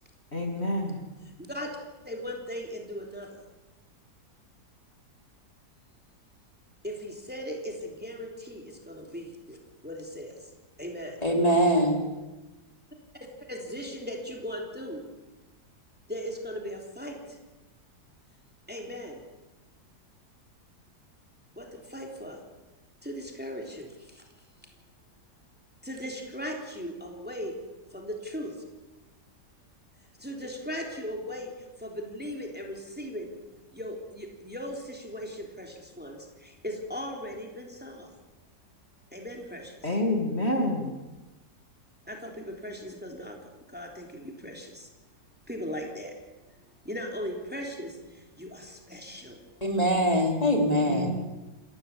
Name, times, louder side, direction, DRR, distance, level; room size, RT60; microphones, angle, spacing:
voice 1, 0.3-1.0 39.8-40.9 50.9-51.1, left 1 dB, 40° left, 2 dB, 3.1 m, -28 dB
voice 2, 2.0-3.3 6.8-9.6 9.8-10.3 10.8-11.1 13.5-15.0 16.1-17.2 18.7-19.2 21.6-22.4 23.0-23.9 25.8-27.5 27.9-28.5 30.2-31.5 31.8-33.3 33.7-38.1 39.1-39.7 42.1-43.4 43.7-44.9 45.5-46.1 46.8-47.9 48.4-49.4, equal, 5° right, 1 dB, 3.4 m, -38 dB
voice 3, 11.2-12.0 49.6-51.1, equal, 25° left, 2 dB, 3.2 m, -23 dB
28.5 x 14.5 x 8.6 m, 1.1 s
omnidirectional pair, 1.7 m